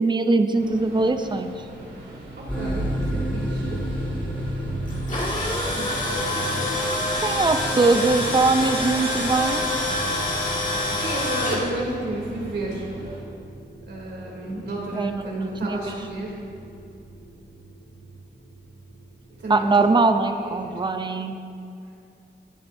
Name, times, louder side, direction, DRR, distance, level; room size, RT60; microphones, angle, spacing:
voice 1, 0.0-1.5 7.2-9.7 14.9-15.2 15.6-15.8 19.5-21.4, right 3 dB, 25° right, 7 dB, 0.6 m, -21 dB
sound 1, 0.6-13.2, right 2 dB, 90° right, 2.5 m, -42 dB
voice 2, 2.4-3.8 5.7-6.9 11.0-12.8 13.9-16.3 19.4-20.0 20.4-20.8, right 1 dB, 70° right, -3 dB, 3.0 m, -32 dB
sound 2, 2.5-21.1, right 1 dB, 5° left, 2.2 m, -34 dB
Tools, 4.9-11.6, left 1 dB, 45° left, 2.2 m, -26 dB
17.5 x 9.8 x 2.7 m, 2.5 s
wide cardioid pair, 155°, 18 cm